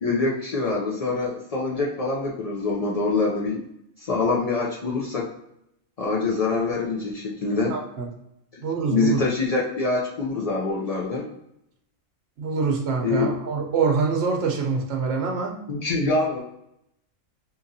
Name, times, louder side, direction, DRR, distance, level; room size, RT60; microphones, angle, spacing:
voice 1, 0.0-3.6 4.0-5.3 6.0-7.8 8.5-8.6 8.9-11.3 13.0-13.3 15.7-16.4, left 3 dB, 75° left, -3 dB, 0.3 m, -25 dB
voice 2, 7.7-8.1 8.6-9.2 12.4-15.6, right 5 dB, 55° right, 1 dB, 1.0 m, -25 dB
3.8 x 2.9 x 2.6 m, 0.79 s
omnidirectional pair, 1.4 m